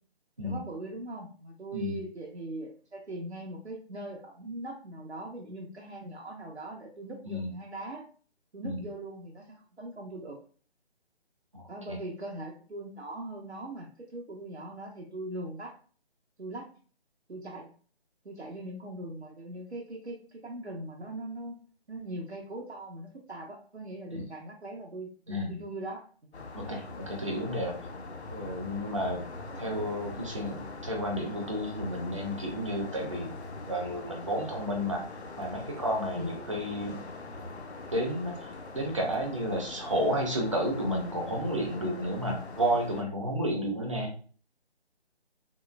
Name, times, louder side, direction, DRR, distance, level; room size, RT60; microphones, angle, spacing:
voice 1, 0.4-8.1 8.5-10.4 11.7-15.7 16.4-16.7 17.3-17.7 18.2-21.6 21.9-26.4 29.0-29.2 36.1-36.4 43.7-43.8, right 1 dB, 85° right, -2 dB, 0.7 m, -41 dB
voice 2, 1.7-2.0 7.2-7.5 8.6-8.8 11.5-12.0 24.1-24.2 25.3-25.6 26.5-27.8 28.3-29.2 29.6-33.3 33.7-35.0 35.4-37.0 37.9-44.1, equal, 30° right, 2 dB, 0.5 m, -31 dB
sound 1, 26.3-43.0, left 2 dB, 80° left, 0.6 m, -42 dB
3.6 x 2.0 x 2.2 m, 0.41 s
figure-of-eight pair, 145°, 32 cm